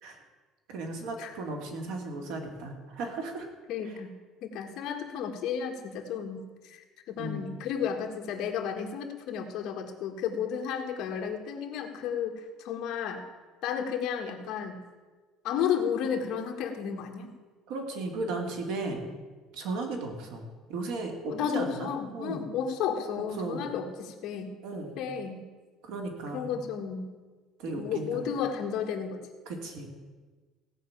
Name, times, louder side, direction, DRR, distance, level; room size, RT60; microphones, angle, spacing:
voice 1, 0.7-3.5 3.8-4.0 7.2-7.6 17.7-19.1 19.5-22.4 23.4-23.7 24.6-25.0 25.8-26.6 27.6-28.3 29.5-29.9, right 3 dB, 70° right, 3 dB, 2.6 m, -36 dB
voice 2, 3.7-4.1 4.4-13.2 13.6-14.8 15.4-17.3 21.3-24.5 25.0-25.4 26.3-27.1 27.7-29.2, left 7 dB, 50° left, 3 dB, 1.7 m, -33 dB
17.0 x 5.7 x 8.8 m, 1.3 s
cardioid pair, 175°, 0 cm